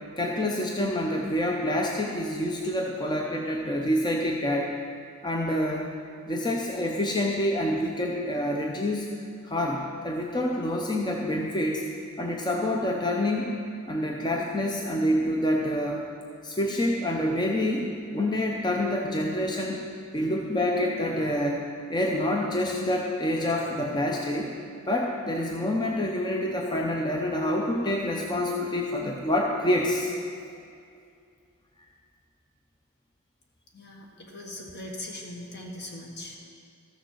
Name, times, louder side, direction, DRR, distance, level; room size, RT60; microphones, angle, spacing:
voice 1, 0.2-4.7 5.2-5.9 6.3-9.1 9.4-11.8 12.2-13.5 13.9-16.0 16.4-19.8 20.1-21.6 21.9-24.5 24.9-30.1, left 1 dB, 20° left, 0 dB, 0.7 m, -27 dB
voice 2, 33.7-36.4, left 1 dB, 55° left, 0 dB, 1.7 m, -40 dB
13.5 x 6.6 x 6.5 m, 2.4 s
head